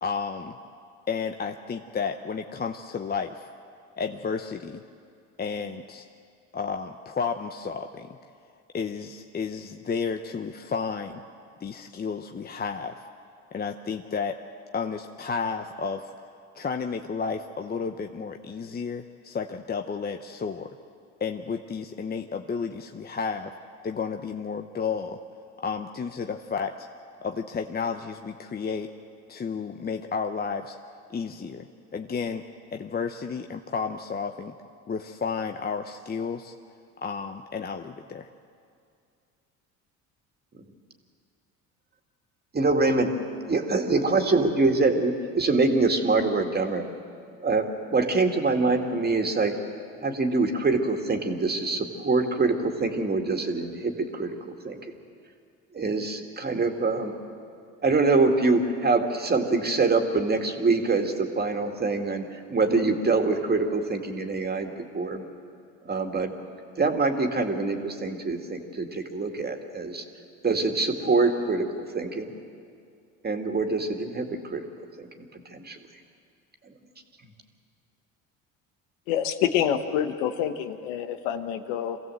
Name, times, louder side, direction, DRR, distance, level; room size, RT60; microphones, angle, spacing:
voice 1, 0.0-0.5 1.1-3.5 4.0-4.8 5.4-6.1 6.5-8.2 8.7-11.2 11.6-13.0 13.5-14.3 14.7-16.1 16.5-20.7 21.2-23.5 23.8-25.2 25.6-26.9 27.2-28.9 29.3-30.8 31.1-31.7 31.9-32.4 32.7-34.5 34.9-36.5 37.0-38.3, left 5 dB, 25° left, 5 dB, 0.8 m, -32 dB
voice 2, 42.5-43.1 43.4-46.9 47.4-49.5 50.0-54.8 55.7-57.2 57.8-65.2 65.9-66.3 66.8-70.0 70.4-72.3 73.2-75.1 75.5-75.8, right 3 dB, 25° right, 4 dB, 2.3 m, -25 dB
voice 3, 79.1-82.0, left 9 dB, 90° left, 9 dB, 1.2 m, -27 dB
24.0 x 16.0 x 7.8 m, 2.4 s
supercardioid pair, 85°, 35 cm